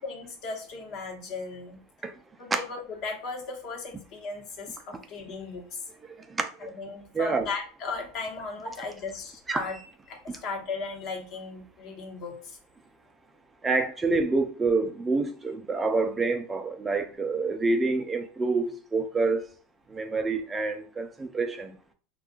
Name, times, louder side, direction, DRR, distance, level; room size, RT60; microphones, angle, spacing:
voice 1, 0.0-1.8 2.4-5.8 6.6-12.6, left 4 dB, 50° left, 1.0 m, -37 dB
voice 2, 6.2-6.5 7.1-7.5 9.5-9.6 13.6-19.5 19.9-21.8, right 3 dB, 15° right, 0.4 m, -27 dB
2.6 x 2.3 x 3.7 m
supercardioid pair, 120°, 0 cm